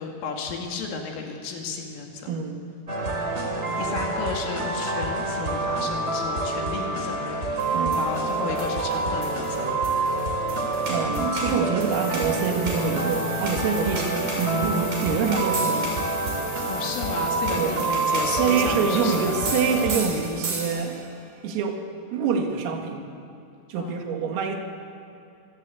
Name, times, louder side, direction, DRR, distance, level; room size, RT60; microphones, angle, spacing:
voice 1, 0.0-2.4 3.4-3.5 3.8-9.8 13.8-14.2 16.7-19.7 23.7-24.0, left 4 dB, 75° left, 1 dB, 4.9 m, -34 dB
voice 2, 2.3-2.6 7.7-8.0 10.9-14.0 14.4-16.0 17.6-17.7 18.3-21.0 21.4-21.8 22.1-23.0 23.7-24.6, right 6 dB, 85° right, 3 dB, 4.8 m, -26 dB
sound 1, 2.9-20.0, right 2 dB, 15° right, 3.1 m, -27 dB
sound 2, 7.6-21.1, right 3 dB, 50° right, 7.6 m, -36 dB
sound 3, 11.9-19.9, left 5 dB, 40° left, 1.8 m, -40 dB
25.0 x 24.5 x 8.5 m, 2.5 s
omnidirectional pair, 5.9 m